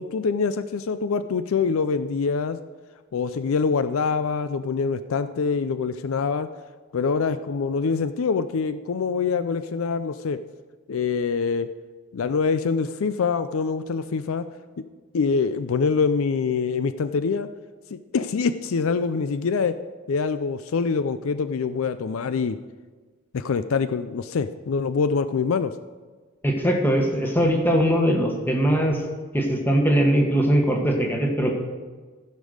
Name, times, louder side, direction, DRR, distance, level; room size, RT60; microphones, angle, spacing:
voice 1, 0.0-2.6 3.1-6.5 6.9-10.4 10.9-11.7 12.1-14.4 14.8-14.9 15.1-17.5 17.9-19.8 20.1-22.6 23.3-25.7, left 5 dB, 70° left, 12 dB, 0.4 m, -25 dB
voice 2, 26.4-29.0 29.3-31.5, equal, 10° left, 1 dB, 1.4 m, -21 dB
15.0 x 5.3 x 6.5 m, 1.4 s
head